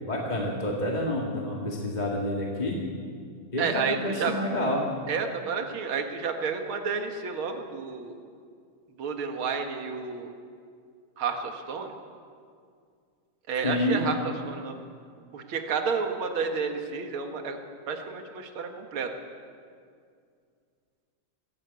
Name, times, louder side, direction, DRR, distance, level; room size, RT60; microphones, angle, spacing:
voice 1, 0.0-2.8 3.5-4.8 13.6-14.1, left 1 dB, 15° left, -2 dB, 1.8 m, -28 dB
voice 2, 3.6-4.3 5.1-8.2 9.0-10.3 11.2-11.9 13.5-14.8 15.3-17.6 17.9-19.1, right 5 dB, 50° right, 4 dB, 2.2 m, -31 dB
23.0 x 14.5 x 8.2 m, 2.2 s
omnidirectional pair, 3.4 m